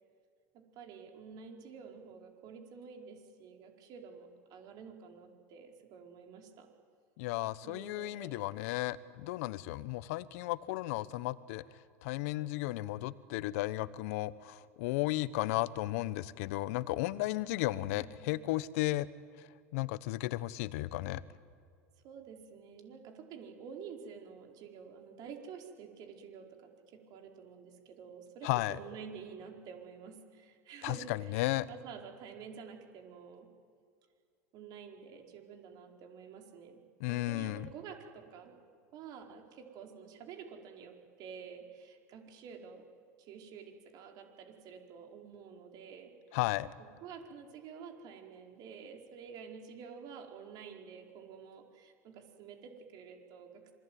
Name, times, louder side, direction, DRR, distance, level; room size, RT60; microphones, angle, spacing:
voice 1, 0.5-6.7 7.6-8.4 17.6-18.4 22.0-33.5 34.5-36.8 37.1-38.5 38.9-42.8 43.2-46.1 46.8-53.7, right 6 dB, 55° right, 3 dB, 4.6 m, -49 dB
voice 2, 7.2-11.6 12.0-19.1 19.4-19.5 19.7-21.2 28.4-28.8 30.8-31.7 37.0-37.7 46.3-46.7, left 17 dB, 70° left, 17 dB, 1.1 m, -34 dB
26.5 x 22.0 x 9.4 m, 2.3 s
hypercardioid pair, 95°, 8 cm